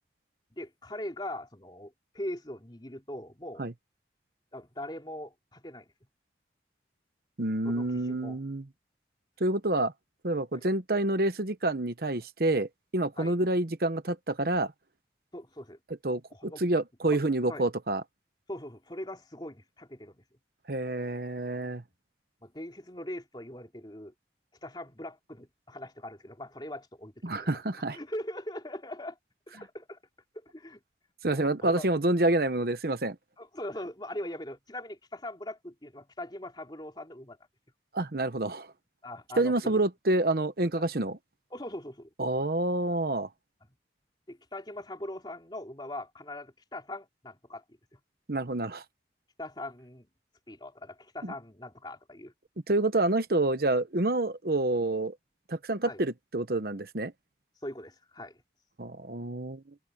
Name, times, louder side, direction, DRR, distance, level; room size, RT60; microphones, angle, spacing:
voice 1, 0.5-3.7 4.5-5.9 7.6-8.4 10.5-10.6 13.2-13.4 15.3-15.8 16.3-16.6 17.1-17.7 18.5-20.2 22.4-24.1 24.6-27.6 27.9-29.2 29.5-30.0 30.3-30.8 31.2-31.9 33.4-37.4 39.0-39.8 41.5-42.1 44.3-48.0 49.4-50.1 50.5-52.3 55.8-56.0 57.6-58.4, left 1 dB, 25° left, 3.1 m, -41 dB
voice 2, 7.4-8.6 9.4-9.9 10.2-14.7 16.0-18.0 20.7-21.8 27.2-28.0 31.2-33.2 37.9-38.7 39.4-41.2 42.2-43.3 48.3-48.8 51.2-51.3 52.7-55.2 55.5-57.1 58.8-59.6, right 2 dB, 55° right, 1.0 m, -28 dB
head